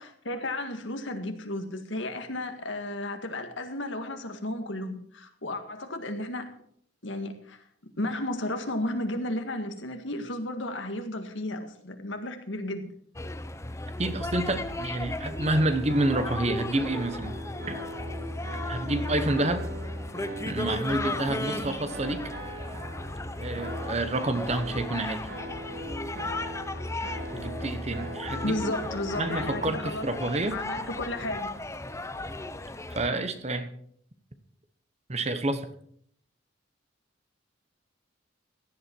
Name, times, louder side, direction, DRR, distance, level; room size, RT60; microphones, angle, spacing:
voice 1, 0.0-6.5 7.0-7.6 8.0-12.9 28.4-30.1 30.5-31.5, left 1 dB, 70° left, 6 dB, 1.8 m, -33 dB
sound 1, 13.2-33.1, left 2 dB, 15° left, 0.7 m, -35 dB
voice 2, 14.0-17.4 17.7-17.8 18.7-19.7 20.4-22.3 23.4-25.3 27.3-28.7 29.2-30.6 32.9-33.7 35.1-35.7, right 2 dB, 35° right, 9 dB, 1.1 m, -29 dB
sound 2, 15.9-29.6, equal, 50° right, 2.6 m, -40 dB
16.5 x 11.0 x 4.6 m, 0.65 s
head